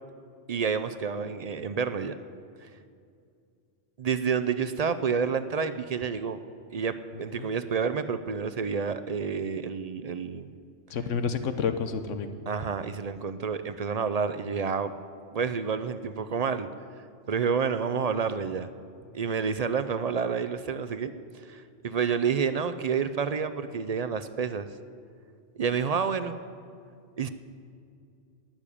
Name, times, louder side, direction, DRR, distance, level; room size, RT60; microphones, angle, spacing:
voice 1, 0.5-2.2 2.6-2.7 4.0-6.4 6.7-10.5 12.5-14.9 15.3-16.7 17.3-18.7 19.1-24.7 25.5-26.3 27.2-27.3, right 6 dB, 55° right, 11 dB, 0.4 m, -29 dB
voice 2, 10.9-12.3, left 6 dB, 90° left, 9 dB, 1.2 m, -29 dB
12.0 x 9.0 x 9.9 m, 2.4 s
omnidirectional pair, 1.2 m